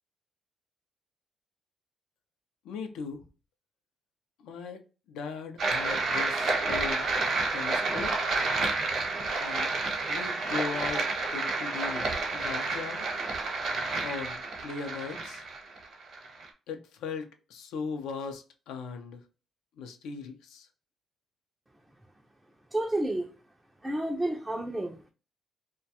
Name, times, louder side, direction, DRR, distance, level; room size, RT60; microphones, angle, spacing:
voice 1, 2.6-3.2 4.4-4.8 5.1-7.1 7.5-8.1 9.4-9.7 10.1-11.1 11.3-13.1 14.0-15.4 16.7-19.2 19.8-20.7, left 5 dB, 90° left, 0.4 m, -38 dB
sound 1, 5.6-16.5, right 3 dB, 60° right, 0.8 m, -30 dB
voice 2, 22.7-23.3 23.8-25.1, right 1 dB, 10° right, 0.3 m, -30 dB
2.3 x 2.1 x 2.7 m
cardioid pair, 90°, 0 cm